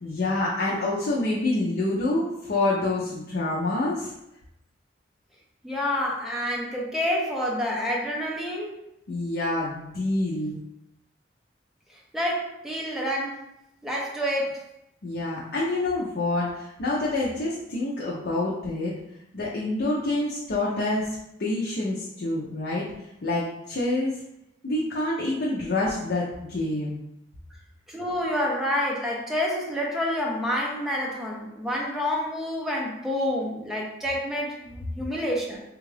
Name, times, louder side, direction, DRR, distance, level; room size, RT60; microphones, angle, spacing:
voice 1, 0.0-4.1 9.1-10.6 15.0-18.9 19.3-21.1 21.4-22.9 23.2-24.2 24.6-27.0, left 2 dB, 60° left, -5 dB, 0.6 m, -27 dB
voice 2, 5.6-8.7 12.1-13.4 13.8-14.6 27.9-35.6, left 1 dB, ahead, -3 dB, 0.7 m, -28 dB
3.6 x 2.4 x 3.2 m, 0.84 s
head